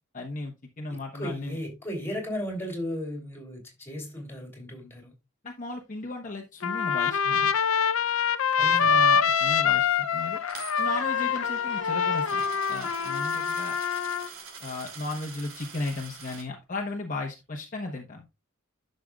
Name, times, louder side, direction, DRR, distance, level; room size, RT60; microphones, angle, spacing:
voice 1, 0.1-1.6 5.4-7.5 8.6-10.4 10.8-12.4 12.7-13.8 14.6-18.2, left 2 dB, 35° left, 1.0 m, -35 dB
voice 2, 0.9-5.1 8.6-9.0, equal, 10° left, 3.2 m, -36 dB
Trumpet, 6.6-14.3, left 7 dB, 65° left, 0.5 m, -25 dB
Coin (dropping), 10.5-16.4, right 6 dB, 70° right, 2.9 m, -45 dB
sound 1, 10.8-15.4, right 4 dB, 40° right, 1.4 m, -46 dB
11.0 x 6.5 x 2.4 m
head